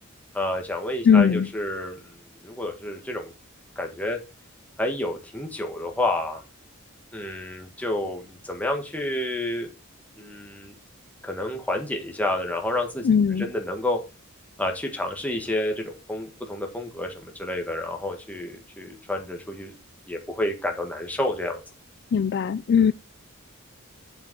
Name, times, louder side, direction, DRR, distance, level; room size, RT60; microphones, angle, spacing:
voice 1, 0.3-2.1 2.4-3.3 3.7-4.2 4.8-6.4 7.1-9.7 10.2-10.7 11.2-13.1 13.4-14.0 14.6-19.7 20.1-21.6, left 1 dB, 5° left, 1.6 m, -29 dB
voice 2, 1.0-1.5 13.0-13.5 22.1-22.9, left 6 dB, 55° left, 0.3 m, -19 dB
8.0 x 7.0 x 3.8 m
head